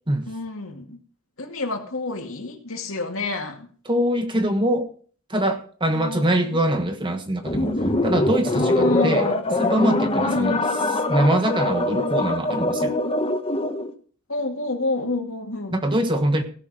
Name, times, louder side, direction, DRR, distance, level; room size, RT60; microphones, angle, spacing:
voice 1, 0.3-1.0 1.4-3.7 5.9-6.6 8.5-9.4 10.2-10.7 14.3-15.8, left 2 dB, 75° left, 3 dB, 2.2 m, -28 dB
voice 2, 3.8-4.9 5.3-7.7 8.0-9.2 9.6-10.6 11.1-12.9 15.7-16.4, right 1 dB, 20° right, 6 dB, 1.4 m, -23 dB
sound 1, 7.4-13.9, left 2 dB, 25° left, 1.0 m, -23 dB
17.0 x 6.1 x 6.0 m, 0.43 s
head